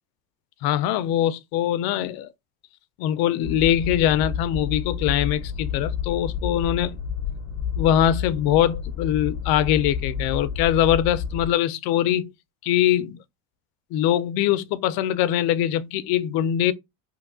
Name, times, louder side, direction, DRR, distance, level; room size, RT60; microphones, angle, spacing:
voice 1, 0.6-2.3 3.0-7.0 7.8-12.3 12.6-13.2 13.9-16.7, left 11 dB, 65° left, 0.5 m, -22 dB
sound 1, 3.4-11.5, left 6 dB, 30° left, 0.7 m, -30 dB
3.1 x 2.3 x 3.6 m
cardioid pair, 145°, 39 cm